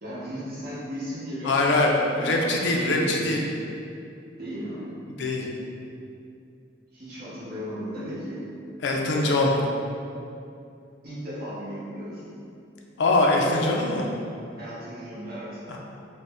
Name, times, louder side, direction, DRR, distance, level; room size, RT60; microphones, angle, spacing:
voice 1, 0.0-3.4 4.4-4.9 6.9-8.5 11.0-12.3 14.6-15.6, equal, 55° right, -9 dB, 0.9 m, -35 dB
voice 2, 1.4-1.9 2.2-3.4 5.2-5.5 8.8-9.5 13.0-14.1 15.7-15.8, left 2 dB, 65° left, -1 dB, 0.4 m, -22 dB
2.6 x 2.0 x 3.4 m, 2.6 s
head